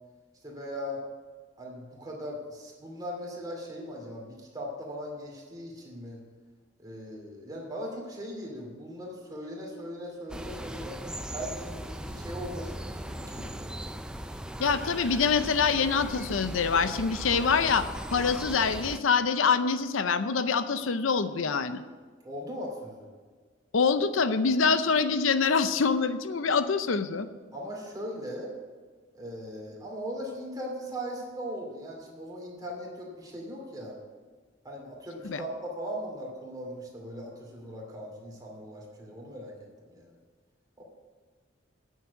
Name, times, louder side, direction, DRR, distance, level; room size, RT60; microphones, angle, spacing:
voice 1, 0.4-1.0 1.6-6.2 6.8-11.0 11.3-13.7 22.2-23.1 27.5-28.5 29.1-34.0 34.6-39.5 39.8-40.2 40.8-40.9, equal, 20° right, -1 dB, 2.6 m, -39 dB
sound 1, 10.3-19.0, right 1 dB, 5° right, 0.4 m, -38 dB
voice 2, 14.6-21.8 23.7-27.3 35.2-35.4, left 5 dB, 85° left, 11 dB, 0.6 m, -25 dB
9.4 x 7.4 x 8.1 m, 1.5 s
head